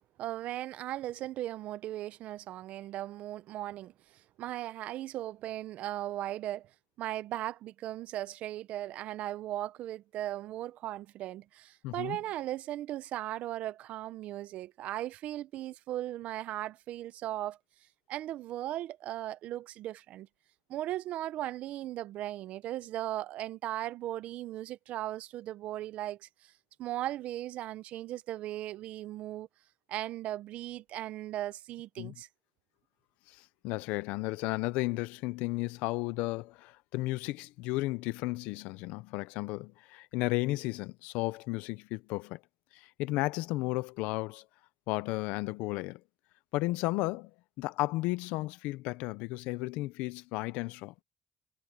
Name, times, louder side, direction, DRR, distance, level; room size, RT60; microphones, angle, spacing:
voice 1, 0.2-6.7 7.0-17.6 18.1-20.3 20.7-26.5 26.8-29.5 29.9-32.3, right 14 dB, 75° right, 1.0 m, -37 dB
voice 2, 11.8-12.2 32.0-32.1 33.3-33.4 33.6-42.4 42.7-44.4 44.9-46.0 46.5-47.3 47.6-50.9, left 20 dB, 85° left, 0.8 m, -33 dB
supercardioid pair, 55°, 2 cm